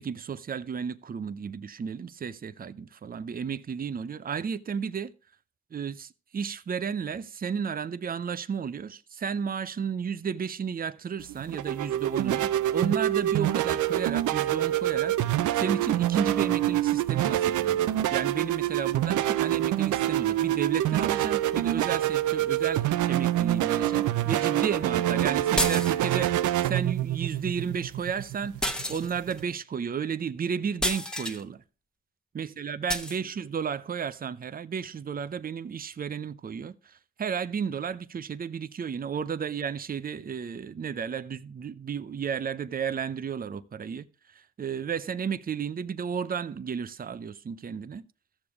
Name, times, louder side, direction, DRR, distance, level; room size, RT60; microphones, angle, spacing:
voice 1, 0.0-5.1 5.7-31.6 32.3-48.1, right 7 dB, 30° right, 0.7 m, -33 dB
sound 1, 11.2-29.4, right 13 dB, 75° right, 0.7 m, -26 dB
sound 2, 25.6-26.3 28.6-29.4 30.8-31.4 32.9-33.2, equal, 5° left, 1.2 m, -30 dB
14.0 x 6.9 x 4.9 m
cardioid pair, 90°, 30 cm